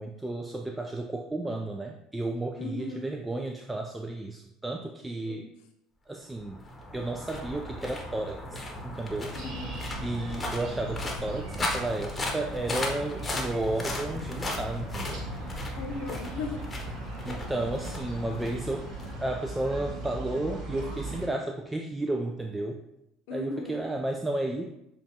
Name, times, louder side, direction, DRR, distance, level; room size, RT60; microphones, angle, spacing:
voice 1, 0.0-5.5 6.1-6.6 6.9-9.4 10.0-15.3 17.2-18.9 19.2-22.8 23.3-24.6, right 2 dB, 10° right, 3 dB, 0.4 m, -33 dB
voice 2, 2.6-3.1 5.2-5.4 9.5-9.9 15.8-16.6 23.3-23.8, left 3 dB, 70° left, 4 dB, 0.7 m, -37 dB
sound 1, 6.3-19.7, left 2 dB, 25° left, 0.9 m, -37 dB
sound 2, 9.3-21.3, right 1 dB, 60° right, 1.5 m, -39 dB
6.6 x 2.4 x 2.8 m, 0.83 s
hypercardioid pair, 75°, 0 cm